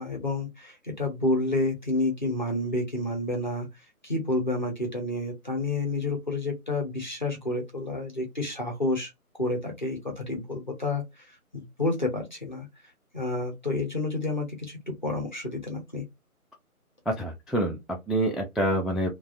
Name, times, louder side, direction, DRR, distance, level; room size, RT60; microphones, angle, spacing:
voice 1, 0.0-3.7 4.0-9.1 9.4-12.7 13.1-16.0, left 2 dB, 35° left, 0.6 m, -29 dB
voice 2, 17.1-19.1, right 1 dB, ahead, 0.3 m, -27 dB
2.4 x 2.2 x 2.4 m
figure-of-eight pair, 165°, 44 cm